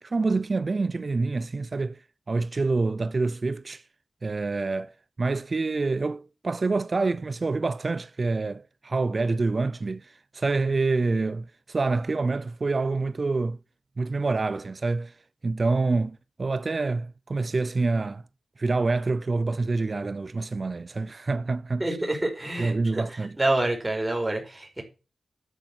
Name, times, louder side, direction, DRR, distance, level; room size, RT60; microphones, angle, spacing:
voice 1, 0.0-2.0 2.3-3.8 4.2-13.6 14.0-15.1 15.4-18.2 18.6-22.0 22.6-23.4, right 3 dB, 40° right, 0.6 m, -27 dB
voice 2, 21.8-23.0 23.4-24.8, right 2 dB, 15° right, 4.7 m, -27 dB
12.0 x 6.8 x 6.1 m
wide cardioid pair, 110°, 0 cm